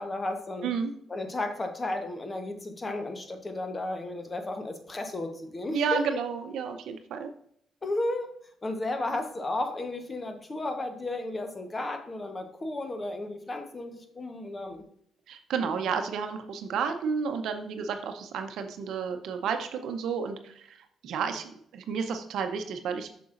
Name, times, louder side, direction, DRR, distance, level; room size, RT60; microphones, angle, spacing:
voice 1, 0.0-0.7 1.1-6.2 7.8-8.3 8.6-14.8, left 2 dB, 25° left, 6 dB, 1.0 m, -33 dB
voice 2, 5.7-7.3 15.3-20.8 21.0-23.1, right 6 dB, 75° right, 7 dB, 0.7 m, -31 dB
6.9 x 6.1 x 2.5 m, 0.68 s
cardioid pair, 90°, 0 cm